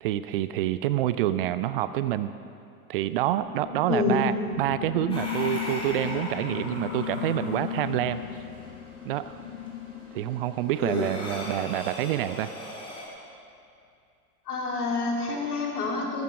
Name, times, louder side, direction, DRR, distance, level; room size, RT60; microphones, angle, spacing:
voice 1, 0.0-2.3 2.9-8.2 9.0-9.4 10.1-12.5, right 13 dB, 40° right, 13 dB, 0.5 m, -27 dB
sound 1, 3.4-11.2, left 12 dB, 50° left, 0.9 m, -37 dB
voice 2, 3.9-4.2 10.8-11.2 14.5-16.2, left 3 dB, 75° left, -1 dB, 3.2 m, -27 dB
sound 2, 5.1-13.1, left 1 dB, 10° left, 4.2 m, -40 dB
14.0 x 13.0 x 5.3 m, 2.5 s
figure-of-eight pair, 95°, 46 cm